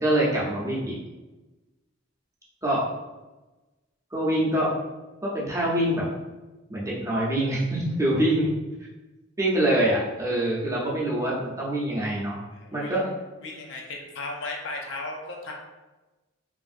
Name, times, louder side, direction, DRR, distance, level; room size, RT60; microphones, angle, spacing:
voice 1, 0.0-1.0 2.6-2.8 4.1-4.7 5.2-6.0 6.7-8.5 9.4-12.4 12.7-13.0, right 1 dB, 15° right, -5 dB, 0.5 m, -25 dB
voice 2, 12.5-13.1 13.4-15.5, left 2 dB, 60° left, 0 dB, 0.5 m, -36 dB
2.9 x 2.5 x 2.5 m, 1.1 s
head